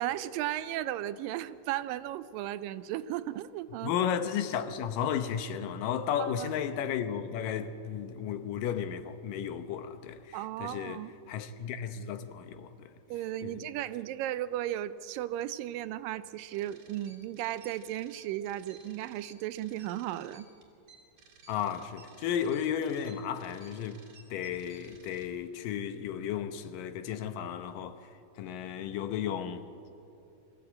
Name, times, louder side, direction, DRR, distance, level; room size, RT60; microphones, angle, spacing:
voice 1, 0.0-3.9 6.2-6.5 10.3-11.1 13.1-20.5, right 13 dB, 90° right, 2.4 m, -35 dB
voice 2, 3.8-12.9 13.4-13.6 21.5-24.0 24.3-28.0 28.4-29.6, left 8 dB, 80° left, 2.6 m, -34 dB
sound 1, 16.5-25.3, right 4 dB, 55° right, 3.9 m, -57 dB
24.0 x 15.0 x 8.7 m
omnidirectional pair, 3.9 m